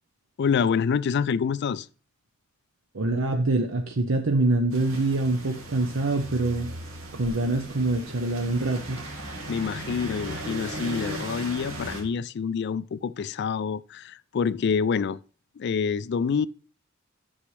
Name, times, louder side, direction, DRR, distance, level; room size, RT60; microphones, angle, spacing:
voice 1, 0.4-1.9 9.5-15.2 15.6-16.5, left 6 dB, 55° left, 0.3 m, -27 dB
voice 2, 2.9-6.7 7.1-9.0, right 2 dB, 65° right, 0.8 m, -25 dB
sound 1, 4.7-12.0, right 1 dB, 90° right, 1.9 m, -37 dB
10.0 x 6.3 x 3.3 m
head